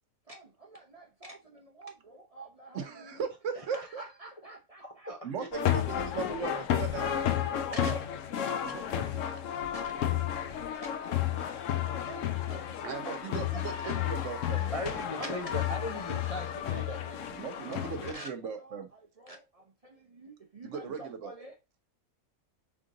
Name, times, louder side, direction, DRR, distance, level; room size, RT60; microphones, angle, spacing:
voice 1, 0.3-3.2 3.6-5.1 7.7-9.4 9.7-13.6 15.2-16.0 17.6-21.6, right 2 dB, 35° right, 0.6 m, -48 dB
voice 2, 2.7-4.0 5.2-8.0 8.6-9.2 12.8-14.8 17.3-18.9 20.6-21.3, right 6 dB, 65° right, 1.0 m, -38 dB
voice 3, 4.8-5.5 14.7-17.4, left 1 dB, 35° left, 0.6 m, -39 dB
sound 1, 5.5-18.1, left 10 dB, 70° left, 0.9 m, -32 dB
3.8 x 3.7 x 3.7 m
omnidirectional pair, 1.5 m